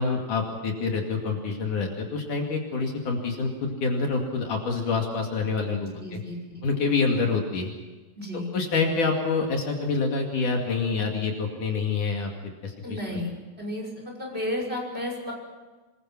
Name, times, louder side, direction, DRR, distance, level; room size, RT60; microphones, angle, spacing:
voice 1, 0.0-6.2 6.6-7.7 8.5-13.0, left 4 dB, 60° left, 1 dB, 3.8 m, -27 dB
voice 2, 5.8-6.6 8.1-8.5 12.8-13.3 13.6-13.9 14.2-15.3, left 1 dB, 15° right, 0 dB, 5.8 m, -32 dB
26.5 x 22.0 x 6.1 m, 1.3 s
omnidirectional pair, 4.2 m